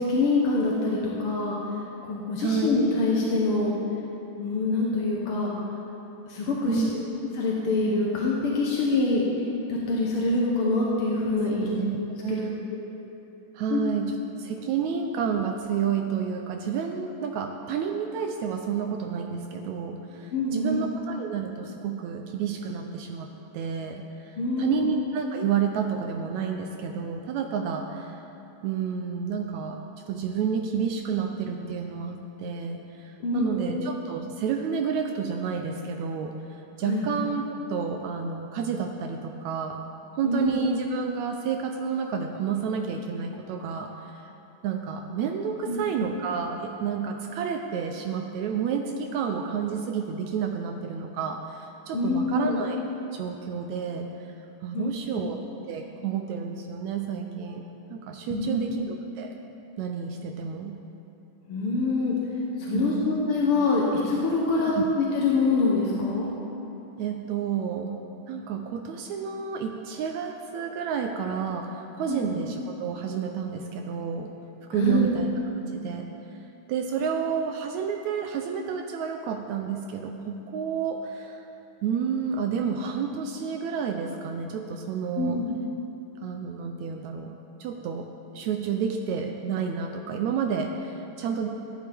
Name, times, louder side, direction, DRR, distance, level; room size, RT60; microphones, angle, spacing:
voice 1, 0.0-1.6 2.1-3.7 4.4-5.5 6.3-6.8 7.3-9.2 9.7-11.7 12.3-12.4 13.7-13.8 20.3-20.8 24.4-24.9 33.2-33.8 36.8-37.1 40.2-40.5 45.7-46.1 51.9-52.6 54.7-54.9 58.3-58.8 61.5-62.1 62.6-66.3 72.1-72.3 74.7-75.1 85.1-85.5, left 3 dB, 65° left, -4 dB, 1.4 m, -25 dB
voice 2, 6.6-7.2 11.6-12.0 12.2-12.6 13.5-14.1 14.4-23.3 23.5-28.2 28.6-29.8 30.1-39.8 40.2-44.2 44.6-52.8 53.1-54.1 54.6-59.3 59.8-60.8 62.7-63.2 64.6-64.8 67.0-67.9 68.3-74.3 74.7-75.3 75.7-76.1 76.7-81.4 81.8-85.4 86.2-87.3 87.6-88.1 88.3-91.5, right 7 dB, 80° right, 4 dB, 1.6 m, -30 dB
14.0 x 11.0 x 3.5 m, 3.0 s
omnidirectional pair, 3.8 m